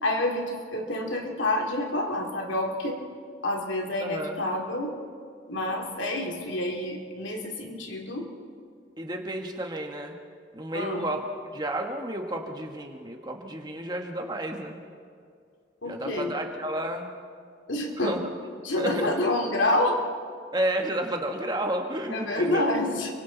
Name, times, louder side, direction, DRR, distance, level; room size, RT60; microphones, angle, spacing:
voice 1, 0.0-3.0 3.4-4.9 5.5-8.3 10.7-11.1 15.8-16.3 17.7-18.1 18.6-20.0 22.1-23.1, left 1 dB, 85° left, 1 dB, 3.0 m, -28 dB
voice 2, 4.0-4.4 9.0-10.1 10.5-11.3 11.5-14.8 15.8-17.1 18.0-18.3 18.8-19.1 20.5-22.7, right 1 dB, 20° right, 3 dB, 1.6 m, -31 dB
29.5 x 24.0 x 4.1 m, 2.2 s
head